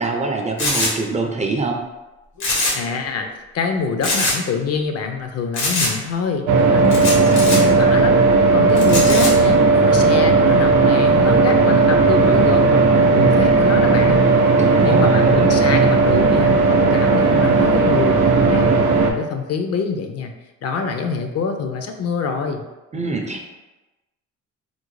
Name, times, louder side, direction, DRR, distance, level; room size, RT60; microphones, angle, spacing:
voice 1, 0.0-1.8 14.6-15.3 22.9-23.5, right 3 dB, 25° right, 2 dB, 0.4 m, -24 dB
sound 1, 0.6-0.9 2.4-2.9 3.2-3.3 4.0-4.4 5.6-5.9 6.9-7.6 8.8-9.3, left 2 dB, 80° left, 1.0 m, -22 dB
voice 2, 2.7-3.3 3.5-8.2 8.5-14.3 14.8-20.3 20.6-22.7, left 5 dB, 55° left, 5 dB, 0.5 m, -25 dB
sound 2, 6.5-19.1, right 3 dB, 80° right, 0.5 m, -15 dB
3.7 x 2.0 x 3.1 m, 1.1 s
cardioid pair, 90°, 30 cm